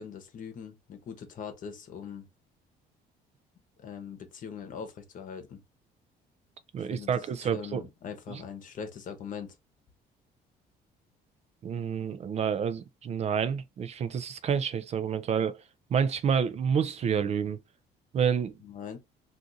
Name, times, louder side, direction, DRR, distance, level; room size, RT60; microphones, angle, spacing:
voice 1, 0.0-2.3 3.8-5.6 6.8-9.6 18.6-19.0, left 7 dB, 50° left, 0.9 m, -41 dB
voice 2, 6.7-7.8 8.3-8.4 11.6-15.6 15.9-17.6 18.1-18.5, right 7 dB, 40° right, 0.4 m, -28 dB
2.5 x 2.4 x 3.9 m
cardioid pair, 110°, 17 cm